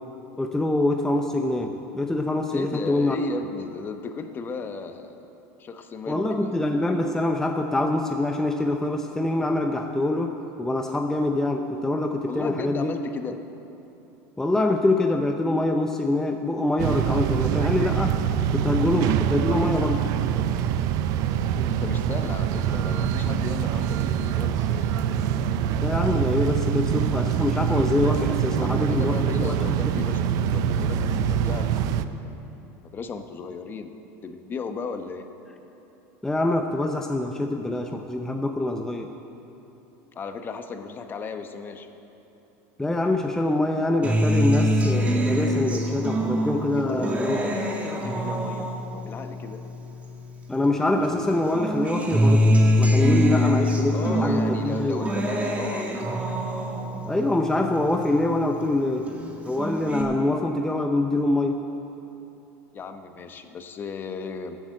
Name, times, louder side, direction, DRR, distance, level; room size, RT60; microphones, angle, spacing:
voice 1, 0.4-3.2 6.1-12.9 14.4-18.2 18.5-20.1 25.8-29.5 29.8-30.0 36.2-39.1 42.8-47.4 50.5-55.0 57.1-59.1 59.4-61.6, left 2 dB, 5° left, 4 dB, 0.6 m, -25 dB
voice 2, 2.5-5.3 5.6-6.5 12.2-13.4 21.7-24.9 28.6-32.4 32.9-33.9 34.2-35.3 40.1-41.9 46.7-49.6 53.3-53.4 53.9-56.1 62.7-64.6, left 5 dB, 30° left, 7 dB, 0.9 m, -35 dB
sound 1, 16.8-32.0, right 9 dB, 55° right, 0.6 m, -24 dB
Acoustic guitar, 44.0-50.7 51.0-58.7 59.1-60.0, equal, 20° right, 1.7 m, -25 dB
13.5 x 8.3 x 7.5 m, 3.0 s
supercardioid pair, 125°, 7 cm